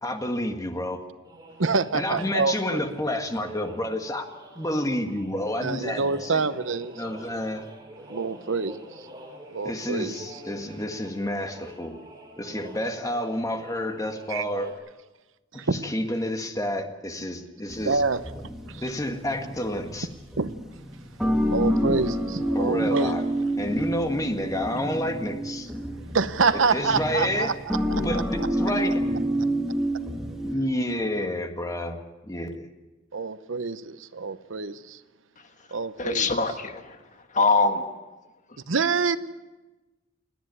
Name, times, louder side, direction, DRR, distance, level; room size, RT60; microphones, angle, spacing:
voice 1, 0.0-1.0 1.9-4.3 4.6-6.5 7.0-7.7 9.6-12.0 12.4-14.7 15.7-18.0 18.8-20.1 22.5-23.2 23.6-25.7 26.7-27.5 28.0-29.0 30.4-32.0 32.2-32.7, left 1 dB, 20° left, 5 dB, 1.7 m, -29 dB
sound 1, 1.2-14.7, equal, 20° right, 3.6 m, -46 dB
voice 2, 1.6-2.8 5.6-6.9 8.1-8.8 9.5-10.1 14.3-14.4 15.6-15.8 17.9-18.2 18.7-18.8 20.4-20.5 21.5-23.1 26.1-27.6 27.9-28.2 33.1-35.0 35.7-36.3 38.7-39.2, right 4 dB, 75° right, 13 dB, 0.8 m, -26 dB
sound 2, 17.7-30.6, right 1 dB, ahead, 2.0 m, -28 dB
voice 3, 36.0-36.9 37.3-37.8, left 4 dB, 40° left, 7 dB, 1.5 m, -23 dB
29.0 x 10.0 x 9.6 m, 1.1 s
head